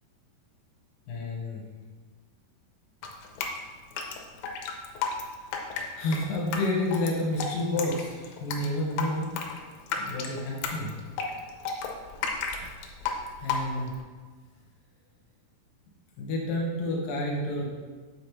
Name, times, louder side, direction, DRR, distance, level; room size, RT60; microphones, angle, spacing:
voice 1, 1.1-1.6 6.0-9.3 10.0-11.0 13.4-13.9 16.2-17.7, left 1 dB, 70° left, -2 dB, 2.5 m, -29 dB
Drip, 3.0-14.0, left 5 dB, 85° left, 2.7 m, -33 dB
6.9 x 5.1 x 3.1 m, 1.5 s
omnidirectional pair, 4.6 m